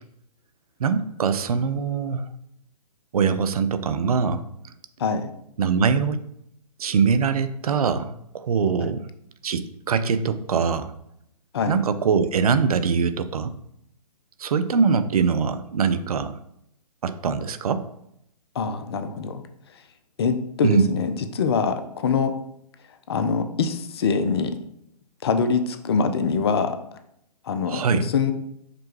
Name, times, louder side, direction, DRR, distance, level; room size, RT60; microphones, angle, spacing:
voice 1, 0.8-2.2 3.1-4.4 5.6-6.2 6.8-9.0 9.4-10.9 11.7-13.5 14.4-16.3 17.0-17.8 20.6-20.8 27.7-28.1, right 5 dB, 65° right, 11 dB, 0.4 m, -22 dB
voice 2, 5.0-5.3 8.8-8.9 11.5-11.8 18.6-19.4 20.2-22.4 23.1-24.6 25.2-26.8 27.4-28.3, left 5 dB, 40° left, 9 dB, 0.4 m, -24 dB
4.9 x 2.2 x 3.1 m, 0.76 s
figure-of-eight pair, 130°, 21 cm